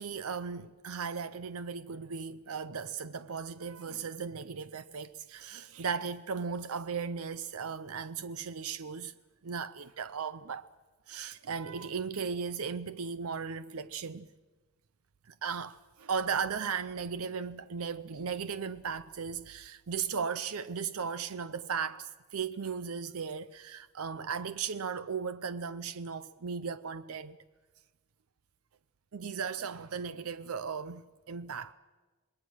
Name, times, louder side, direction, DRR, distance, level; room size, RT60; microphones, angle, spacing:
voice 1, 0.0-9.1 9.4-10.7 11.1-14.3 15.3-27.4 29.1-31.7, right 6 dB, 85° right, 0.6 m, -36 dB
26.5 x 20.5 x 6.3 m
head